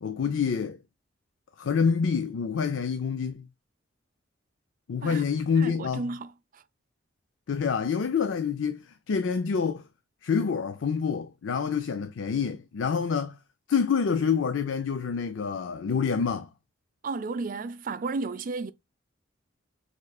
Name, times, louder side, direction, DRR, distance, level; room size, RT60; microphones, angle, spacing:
voice 1, 0.0-0.8 1.6-3.5 4.9-6.0 7.5-9.8 10.2-13.4 13.7-16.5, left 6 dB, 80° left, 0.4 m, -27 dB
voice 2, 5.6-6.6 17.0-18.7, right 3 dB, 45° right, 0.4 m, -33 dB
6.4 x 3.1 x 2.3 m
head